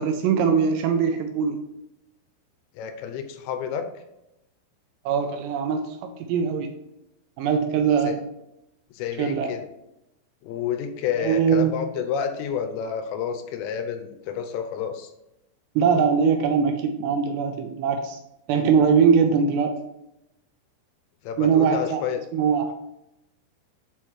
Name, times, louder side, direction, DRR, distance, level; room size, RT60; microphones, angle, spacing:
voice 1, 0.0-1.6 5.1-6.7 7.4-8.2 9.2-9.5 11.2-11.7 15.8-18.2 18.5-19.8 21.4-22.0 22.3-22.7, right 6 dB, 80° right, 5 dB, 2.6 m, -21 dB
voice 2, 2.8-3.9 8.0-8.2 8.9-9.6 10.4-15.1 21.2-22.2, left 8 dB, 85° left, 8 dB, 2.9 m, -29 dB
8.6 x 4.3 x 3.1 m, 0.87 s
omnidirectional pair, 5.1 m